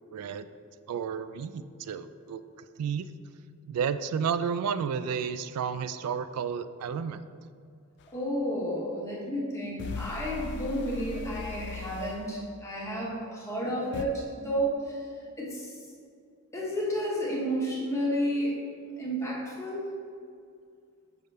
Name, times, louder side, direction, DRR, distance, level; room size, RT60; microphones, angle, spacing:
voice 1, 0.1-0.5 0.9-3.1 3.7-7.2, right 7 dB, 80° right, 12 dB, 0.3 m, -32 dB
sound 1, 8.0-8.1 9.8-12.3 13.9-14.0, left 4 dB, 50° left, 0.4 m, -38 dB
voice 2, 8.1-15.0 15.4-15.8 16.5-18.6 19.0-20.0, equal, 15° left, -5 dB, 1.0 m, -31 dB
6.5 x 5.3 x 3.3 m, 2.4 s
head